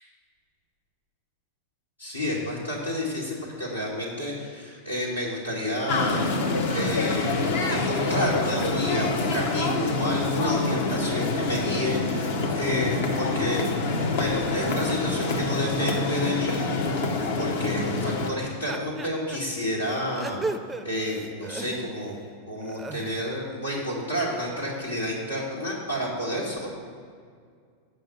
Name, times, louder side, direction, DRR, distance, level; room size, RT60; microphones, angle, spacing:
voice 1, 2.0-6.4 6.7-13.6 14.1-16.6 17.4-20.6 20.8-22.2 22.5-26.7, left 1 dB, 85° left, -6 dB, 1.9 m, -30 dB
sound 1, 5.9-18.3, left 3 dB, 55° left, 0.9 m, -26 dB
sound 2, 18.7-19.4 19.9-22.1 22.6-23.3, right 3 dB, 10° right, 0.4 m, -35 dB
7.8 x 5.6 x 7.3 m, 2.1 s
figure-of-eight pair, 90°, 0 cm